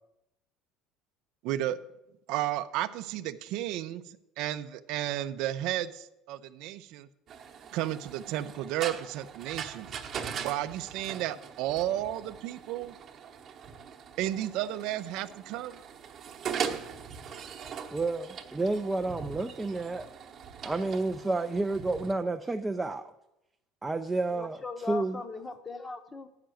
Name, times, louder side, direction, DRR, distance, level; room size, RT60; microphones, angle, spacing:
voice 1, 1.4-1.8 2.3-7.1 7.7-9.9 10.4-13.0 14.2-15.8, right 13 dB, 60° right, 12 dB, 0.5 m, -33 dB
sound 1, 7.3-22.1, right 7 dB, 35° right, 1.0 m, -41 dB
voice 2, 17.9-20.1 20.6-23.1 23.8-24.6 24.9-25.2, right 2 dB, 10° right, 7 dB, 0.4 m, -30 dB
voice 3, 24.3-26.3, left 3 dB, 15° left, 10 dB, 0.8 m, -39 dB
10.0 x 5.8 x 7.6 m, 0.88 s
cardioid pair, 150°, 0 cm